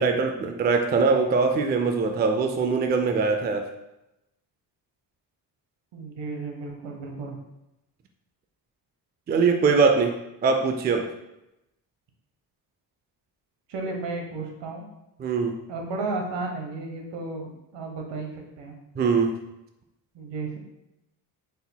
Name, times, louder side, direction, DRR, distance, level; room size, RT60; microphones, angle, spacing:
voice 1, 0.0-3.6 9.3-10.2 10.4-11.1 15.2-15.5 19.0-19.3, right 4 dB, 25° right, 4 dB, 0.3 m, -22 dB
voice 2, 5.9-7.4 13.7-14.9 15.7-18.3 18.6-18.8 20.1-20.6, right 3 dB, 70° right, 2 dB, 1.0 m, -33 dB
4.0 x 4.0 x 2.2 m, 0.91 s
cardioid pair, 90°, 45 cm